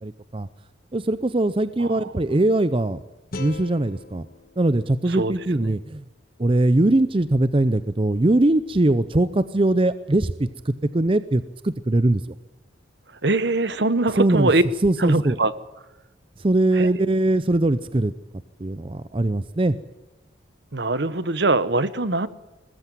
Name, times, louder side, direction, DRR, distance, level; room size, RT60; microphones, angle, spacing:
voice 1, 0.0-0.5 0.9-3.0 3.4-4.3 4.6-6.0 6.4-12.4 14.2-14.5 14.8-15.4 16.4-18.1 18.6-19.7, right 2 dB, 30° right, 14 dB, 0.6 m, -21 dB
sound 1, 3.3-6.4, left 2 dB, 50° left, 1.3 m, -42 dB
voice 2, 13.2-14.6 15.0-15.5 16.8-16.9 20.7-22.3, right 2 dB, 60° right, 16 dB, 1.0 m, -22 dB
20.5 x 14.5 x 9.1 m, 1.1 s
head